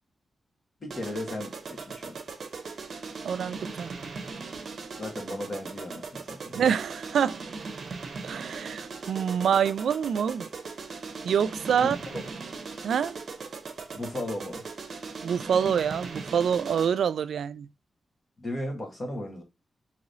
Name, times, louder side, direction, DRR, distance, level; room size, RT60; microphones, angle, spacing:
voice 1, 0.8-2.2 5.0-6.6 11.8-12.2 13.9-14.6 18.4-19.4, left 1 dB, 35° left, 1.4 m, -36 dB
sound 1, 0.9-17.1, right 4 dB, 45° right, 0.8 m, -39 dB
voice 2, 3.2-3.9 6.5-7.4 8.2-10.5 11.2-12.0 12.8-13.2 15.2-17.7, right 7 dB, 90° right, 0.3 m, -26 dB
4.9 x 3.1 x 2.6 m
wide cardioid pair, 165°, 0 cm